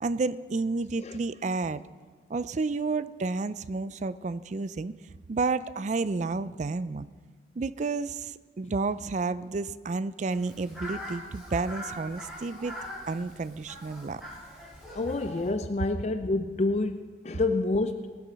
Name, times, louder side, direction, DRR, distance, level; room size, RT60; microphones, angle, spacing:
voice 1, 0.0-1.8 2.3-5.0 5.3-7.1 7.6-12.8 13.1-14.2, right 3 dB, 40° right, 16 dB, 0.4 m, -31 dB
Fowl, 10.3-15.5, equal, 5° right, 5.8 m, -42 dB
voice 2, 14.9-18.1, left 2 dB, 35° left, 9 dB, 0.4 m, -28 dB
19.5 x 8.6 x 6.2 m, 1.5 s
head